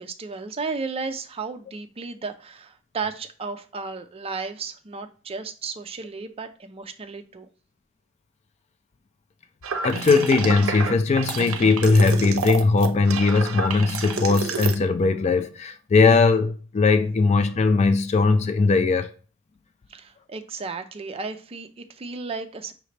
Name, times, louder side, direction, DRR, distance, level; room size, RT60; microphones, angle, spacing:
voice 1, 0.0-7.5 19.9-22.7, right 4 dB, 30° right, 0.4 m, -34 dB
sound 1, 9.6-14.7, right 5 dB, 75° right, 0.6 m, -29 dB
voice 2, 9.8-19.1, left 4 dB, 35° left, 0.3 m, -19 dB
5.7 x 2.7 x 3.2 m
head